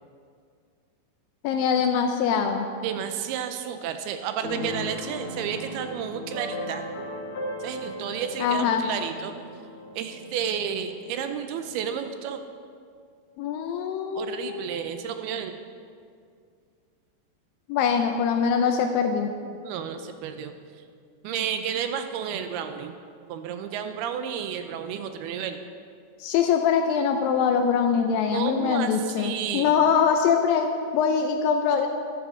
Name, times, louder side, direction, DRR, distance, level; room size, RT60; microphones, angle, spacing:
voice 1, 1.4-2.7 8.4-8.8 13.4-14.7 17.7-19.3 26.2-31.9, left 6 dB, 85° left, 4 dB, 2.0 m, -23 dB
voice 2, 2.8-6.9 7.6-9.4 10.0-12.4 14.2-15.6 19.6-20.5 21.2-22.9 23.3-25.7 28.3-29.8, right 8 dB, 80° right, 8 dB, 2.5 m, -31 dB
Keyboard (musical), 4.4-11.9, equal, 35° left, 2.7 m, -37 dB
12.5 x 12.0 x 3.7 m, 2.2 s
omnidirectional pair, 4.7 m